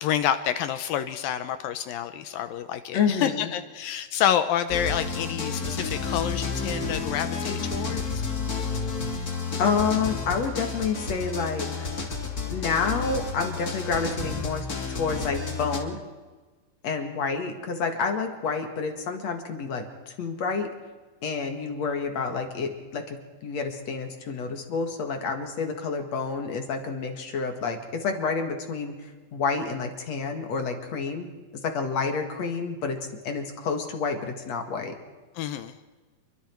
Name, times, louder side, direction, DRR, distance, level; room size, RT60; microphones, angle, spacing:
voice 1, 0.0-8.2 35.4-35.8, left 10 dB, 75° left, 10 dB, 2.5 m, -28 dB
voice 2, 2.9-3.5 9.6-11.7 12.5-16.0 16.8-20.7 21.2-28.9 29.3-31.3 31.6-33.0 33.2-34.9, left 5 dB, 50° left, 5 dB, 2.8 m, -29 dB
sound 1, 4.7-15.8, left 4 dB, 30° left, 2.5 m, -31 dB
28.5 x 23.5 x 4.6 m, 1.3 s
omnidirectional pair, 4.3 m